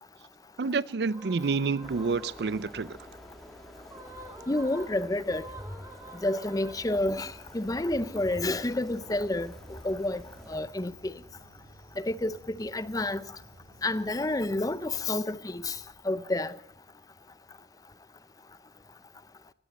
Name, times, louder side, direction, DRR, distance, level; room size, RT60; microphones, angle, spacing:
voice 1, 0.6-3.0, right 4 dB, 65° right, 0.5 m, -28 dB
sound 1, 1.1-2.7 3.8-7.2, right 2 dB, 20° right, 3.4 m, -48 dB
sound 2, 1.8-10.6, equal, ahead, 2.2 m, -48 dB
voice 2, 4.5-5.5 6.2-10.2 10.5-11.1 12.0-13.2 13.8-15.8 16.0-16.6, left 2 dB, 20° left, 0.6 m, -29 dB
sound 3, 6.7-15.0, equal, 50° right, 6.3 m, -54 dB
17.5 x 17.0 x 4.2 m
head